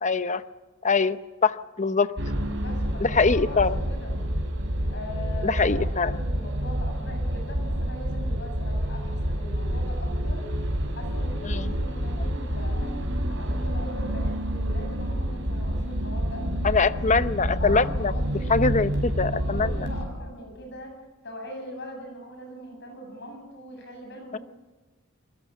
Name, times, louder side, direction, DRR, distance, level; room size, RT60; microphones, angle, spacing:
voice 1, 0.0-0.4 0.8-2.1 3.0-3.7 5.4-6.1 11.4-11.7 16.6-18.1 18.5-19.7 24.3-24.4, left 4 dB, 35° left, 14 dB, 0.8 m, -23 dB
sound 1, 2.2-20.1, equal, 60° right, 5.5 m, -28 dB
voice 2, 2.6-4.1 4.9-10.5 10.9-12.9 13.3-16.5 17.6-18.8 19.2-20.9 21.2-24.4, equal, 55° left, 4 dB, 7.9 m, -41 dB
25.5 x 21.0 x 8.3 m, 1.2 s
head